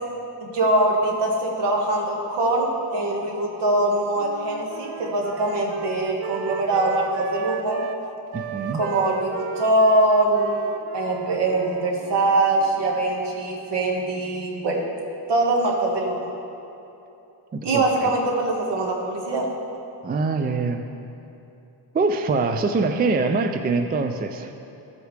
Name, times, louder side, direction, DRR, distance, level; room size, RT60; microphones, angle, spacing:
voice 1, 0.4-7.8 8.7-10.7 10.9-14.8 15.3-16.3 17.6-19.5, right 2 dB, 65° right, 0 dB, 1.7 m, -22 dB
sound 1, 4.2-8.0 8.3-12.7, right 7 dB, 80° right, 0.6 m, -35 dB
voice 2, 8.3-8.8 17.5-18.1 20.0-20.8 21.9-24.5, right 3 dB, 25° right, 6 dB, 0.3 m, -24 dB
14.5 x 8.0 x 3.3 m, 2.9 s
cardioid pair, 125°, 45 cm